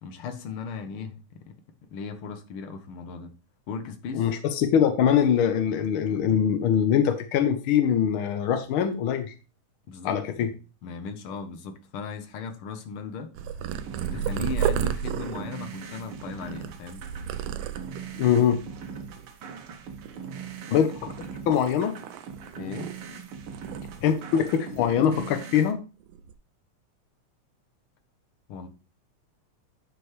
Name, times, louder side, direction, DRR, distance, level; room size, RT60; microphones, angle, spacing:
voice 1, 0.0-1.6 1.9-3.3 3.7-4.3 9.9-10.5 10.8-13.5 14.1-17.0 22.6-22.9 28.5-28.7, left 5 dB, 65° left, 1.5 m, -37 dB
voice 2, 4.1-9.3 10.0-10.5 18.2-18.6 20.7-22.0 24.0-25.8, left 8 dB, 80° left, 1.1 m, -23 dB
Purr, 13.4-18.2 18.8-19.2 19.5-20.7 21.1-23.2 23.5-24.8 25.0-25.3 26.0-26.3, right 10 dB, 80° right, 1.9 m, -33 dB
sound 1, 13.7-25.7, right 6 dB, 65° right, 1.5 m, -41 dB
11.0 x 5.1 x 3.2 m
omnidirectional pair, 3.4 m